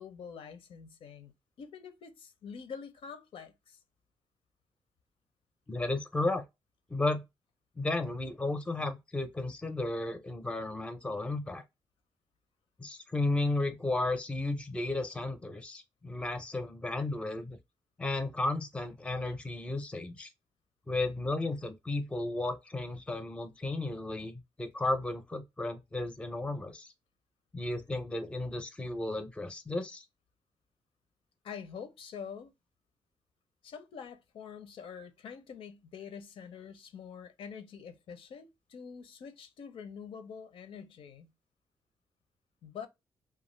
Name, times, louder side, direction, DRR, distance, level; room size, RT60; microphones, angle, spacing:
voice 1, 0.0-3.8 31.4-32.5 33.6-41.3 42.6-42.9, left 6 dB, 80° left, 0.6 m, -46 dB
voice 2, 5.7-6.4 6.9-7.2 7.8-11.6 12.8-17.6 18.0-20.3 20.9-26.9 27.5-30.0, left 2 dB, 10° left, 0.5 m, -34 dB
2.5 x 2.3 x 3.0 m
wide cardioid pair, 145°, 9 cm